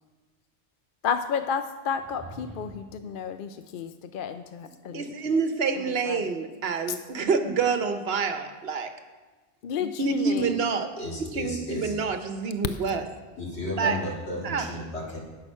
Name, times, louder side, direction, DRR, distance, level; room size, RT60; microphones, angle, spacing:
voice 1, 1.0-5.4 5.7-6.3 6.9-7.0 9.6-10.6, left 7 dB, 60° left, 9 dB, 0.7 m, -32 dB
sound 1, 1.9-3.1, right 2 dB, 20° right, 2.3 m, -45 dB
voice 2, 4.9-8.9 9.8-10.9 11.3-13.0 13.8-14.0 14.4-14.7, right 5 dB, 65° right, 7 dB, 1.1 m, -27 dB
voice 3, 11.0-12.0 13.4-15.2, left 1 dB, 85° left, -3 dB, 2.5 m, -33 dB
10.5 x 7.7 x 5.5 m, 1.3 s
omnidirectional pair, 1.1 m